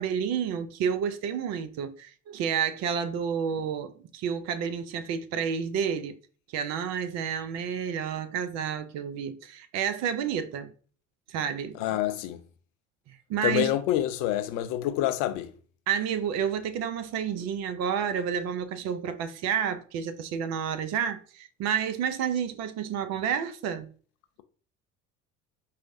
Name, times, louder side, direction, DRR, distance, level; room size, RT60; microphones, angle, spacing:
voice 1, 0.0-6.2 6.5-10.7 11.3-12.0 13.1-13.8 15.9-23.9, right 7 dB, 40° right, 0.5 m, -30 dB
voice 2, 11.8-12.4 13.4-15.5, left 13 dB, 50° left, 0.5 m, -27 dB
4.6 x 2.0 x 2.6 m
figure-of-eight pair, 60°, 41 cm